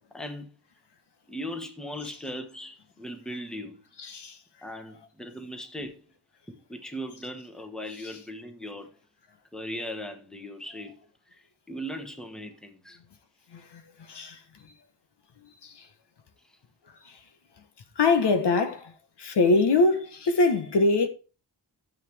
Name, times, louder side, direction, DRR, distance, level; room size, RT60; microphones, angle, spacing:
voice 1, 0.1-0.5 1.3-3.8 4.6-6.0 6.5-8.9 9.5-11.0 11.3-13.0, equal, ahead, 1.3 m, -38 dB
voice 2, 4.0-4.4 8.0-8.2 13.5-14.7 15.4-15.9 16.9-17.2 17.9-21.1, left 3 dB, 70° left, 1.4 m, -25 dB
13.0 x 7.5 x 3.5 m
wide cardioid pair, 160°, 43 cm